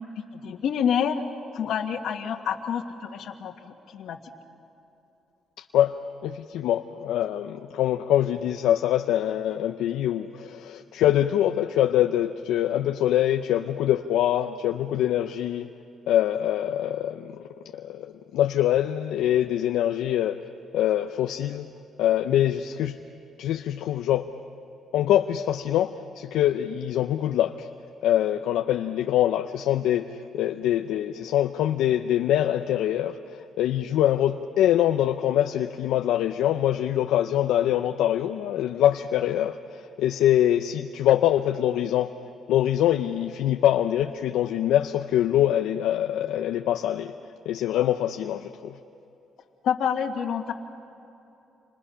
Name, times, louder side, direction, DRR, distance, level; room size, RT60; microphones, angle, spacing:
voice 1, 0.3-1.2 1.5-4.2 49.6-50.5, left 8 dB, 75° left, 5 dB, 1.8 m, -28 dB
voice 2, 5.6-5.9 6.2-15.7 16.1-17.3 17.7-20.4 20.7-21.7 22.0-23.0 23.4-24.3 24.9-27.7 28.0-42.1 42.5-47.1 47.5-48.7, left 11 dB, 90° left, 6 dB, 0.7 m, -24 dB
29.5 x 26.0 x 5.7 m, 3.0 s
cardioid pair, 90°, 0 cm